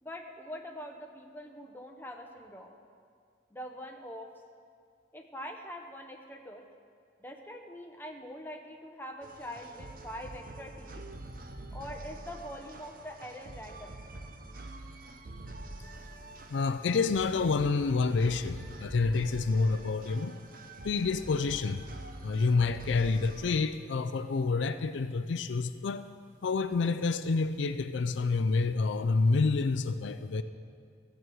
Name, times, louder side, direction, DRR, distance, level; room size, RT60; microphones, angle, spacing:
voice 1, 0.0-2.8 3.5-4.3 5.1-6.6 7.2-11.0 11.7-13.9, equal, 10° left, 2 dB, 0.9 m, -44 dB
sound 1, 9.2-23.6, right 2 dB, 45° right, 0.8 m, -46 dB
voice 2, 16.5-20.4 20.8-21.8 22.2-26.0 26.4-30.4, left 4 dB, 75° left, 11 dB, 0.4 m, -28 dB
14.0 x 6.2 x 7.8 m, 2.3 s
head